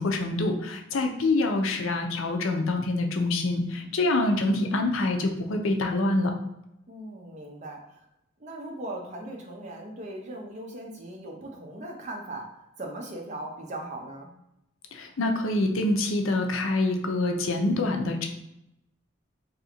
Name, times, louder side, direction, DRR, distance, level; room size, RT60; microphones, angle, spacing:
voice 1, 0.0-6.3 14.9-18.3, left 2 dB, 80° left, 4 dB, 0.5 m, -26 dB
voice 2, 6.9-8.1 8.4-14.3, right 1 dB, 35° right, 1 dB, 0.6 m, -39 dB
2.7 x 2.5 x 4.2 m, 0.84 s
head